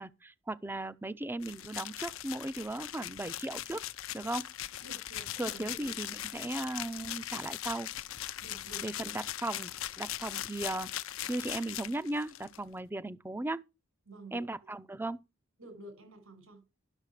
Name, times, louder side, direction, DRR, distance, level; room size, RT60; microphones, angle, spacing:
voice 1, 0.0-3.8 4.1-4.5 5.4-7.9 8.8-10.9 11.3-13.6 14.3-15.2, right 2 dB, 10° right, 0.5 m, -37 dB
sound 1, 1.4-12.6, left 13 dB, 65° left, 0.5 m, -40 dB
voice 2, 4.8-5.9 8.4-8.9 14.1-14.5 15.6-16.6, right 1 dB, 80° right, 5.5 m, -50 dB
11.5 x 6.6 x 4.9 m
head